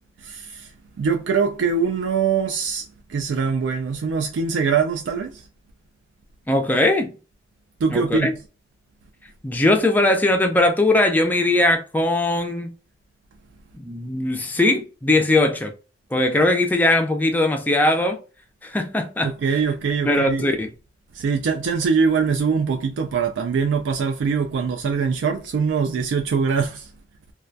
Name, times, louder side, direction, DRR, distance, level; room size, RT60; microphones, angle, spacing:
voice 1, 0.2-2.8 3.1-5.5 7.8-8.3 19.2-20.5 21.1-26.9, right 5 dB, 85° right, 0.3 m, -23 dB
voice 2, 6.5-7.1 7.9-8.3 9.4-12.7 13.8-15.7 16.1-18.2 18.6-19.3 20.1-20.7, left 2 dB, 10° left, 0.3 m, -20 dB
2.2 x 2.1 x 2.5 m
head